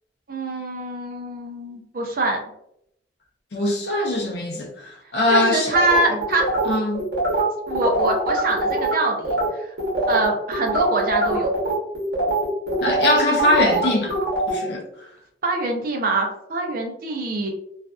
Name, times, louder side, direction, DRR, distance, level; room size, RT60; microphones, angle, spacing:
voice 1, 0.3-2.4 5.3-6.4 7.7-9.7 10.1-11.5 15.4-17.5, right 2 dB, 50° right, 1 dB, 0.5 m, -24 dB
voice 2, 3.5-5.7 6.7-7.1 12.8-14.1 14.5-15.1, left 2 dB, 60° left, 0 dB, 0.6 m, -22 dB
sound 1, 5.7-8.9 9.2-9.5 9.8-14.6, right 2 dB, 70° right, 1.0 m, -23 dB
2.5 x 2.4 x 2.3 m, 0.75 s
head